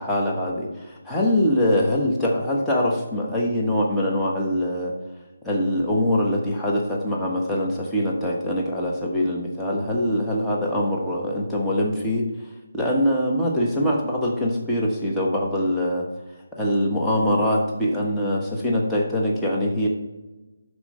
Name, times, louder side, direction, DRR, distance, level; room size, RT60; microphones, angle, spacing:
voice 1, 0.0-4.9 5.4-12.3 12.7-16.1 16.5-19.9, left 1 dB, 5° left, -4 dB, 1.2 m, -23 dB
12.0 x 4.7 x 4.3 m, 1.1 s
figure-of-eight pair, 155°, 0 cm